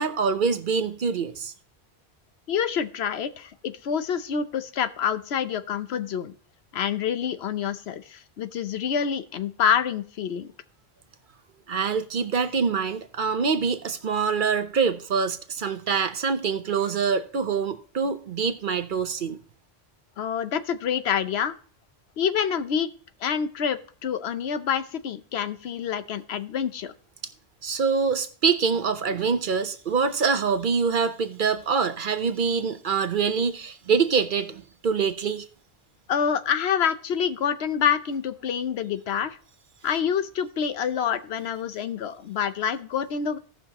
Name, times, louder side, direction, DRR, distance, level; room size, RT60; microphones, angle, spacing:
voice 1, 0.0-1.5 11.7-19.4 27.6-35.5, right 5 dB, 55° right, 0.8 m, -25 dB
voice 2, 2.5-6.3 6.7-10.5 20.2-21.6 22.2-22.9 23.2-26.9 36.1-39.4 39.8-43.4, left 8 dB, 80° left, 0.9 m, -27 dB
16.5 x 5.9 x 2.9 m
omnidirectional pair, 1.1 m